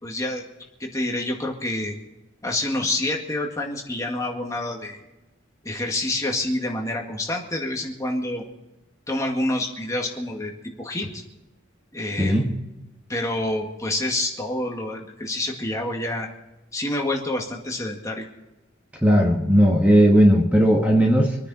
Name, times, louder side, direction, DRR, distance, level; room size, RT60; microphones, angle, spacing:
voice 1, 0.0-0.5 0.8-2.0 2.4-5.0 5.6-8.4 9.1-10.5 10.8-11.2 11.9-12.5 13.1-16.3 16.7-18.3, left 1 dB, 15° left, 0 dB, 2.0 m, -27 dB
voice 2, 19.0-21.4, equal, 5° right, 0 dB, 1.5 m, -17 dB
26.0 x 9.9 x 4.3 m, 1.0 s
head